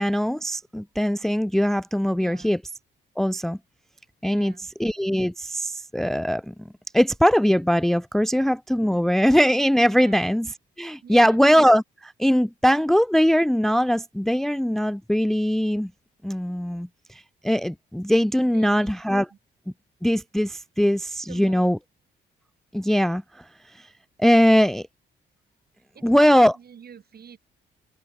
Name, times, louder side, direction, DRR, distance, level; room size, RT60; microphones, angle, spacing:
voice 1, 0.0-2.6 3.2-3.6 4.2-4.5 4.8-6.5 6.9-10.5 10.8-15.9 16.2-19.3 20.0-21.8 22.7-23.4 23.8-23.9 24.2-24.9 26.0-26.5, equal, ahead, 0.5 m, -21 dB
voice 2, 2.2-2.6 4.3-4.7 9.9-10.2 11.0-11.4 18.4-19.0 19.3-19.4 21.3-21.7 25.9-27.4, right 7 dB, 50° right, 5.3 m, -45 dB
open air
cardioid pair, 90°, 20 cm